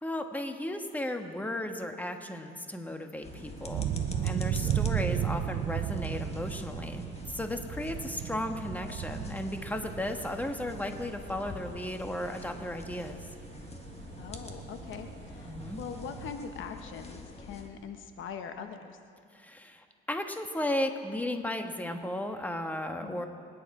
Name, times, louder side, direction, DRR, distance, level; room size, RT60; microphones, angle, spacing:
voice 1, 0.0-3.9 4.2-13.2 15.4-15.8 19.3-23.3, left 1 dB, 10° left, 5 dB, 1.4 m, -35 dB
sound 1, 3.2-17.7, left 3 dB, 30° left, 1.6 m, -45 dB
sound 2, 3.3-16.3, right 10 dB, 70° right, 0.6 m, -36 dB
voice 2, 4.3-4.7 14.2-19.0 22.9-23.2, left 7 dB, 80° left, 7 dB, 1.1 m, -42 dB
26.0 x 10.0 x 4.9 m, 2.3 s
cardioid pair, 90°, 20 cm